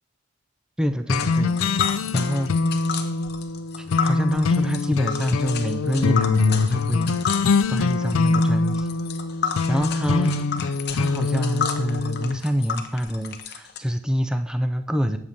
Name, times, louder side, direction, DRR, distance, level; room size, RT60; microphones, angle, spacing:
voice 1, 0.8-2.5 3.8-8.9 9.7-15.2, equal, 5° right, 8 dB, 0.3 m, -26 dB
sound 1, 1.1-12.4, left 4 dB, 80° left, 0.4 m, -23 dB
Tick, 1.1-13.8, left 7 dB, 50° left, 0.8 m, -32 dB
16.5 x 6.5 x 2.9 m, 0.70 s
head